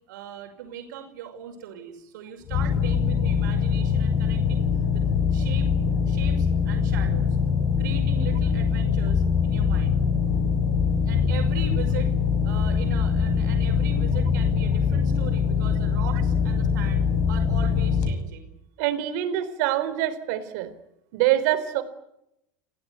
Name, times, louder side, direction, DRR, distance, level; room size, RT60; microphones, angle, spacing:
voice 1, 0.1-5.0 5.3-5.7 6.1-7.4 7.8-10.0 11.0-12.1 12.4-18.5, right 8 dB, 85° right, 4 dB, 5.8 m, -40 dB
sound 1, 2.5-18.1, left 6 dB, 45° left, 5.9 m, -23 dB
voice 2, 18.8-20.7 21.1-21.8, right 13 dB, 60° right, 12 dB, 4.0 m, -25 dB
30.0 x 17.5 x 9.6 m, 0.81 s
supercardioid pair, 165°, 10 cm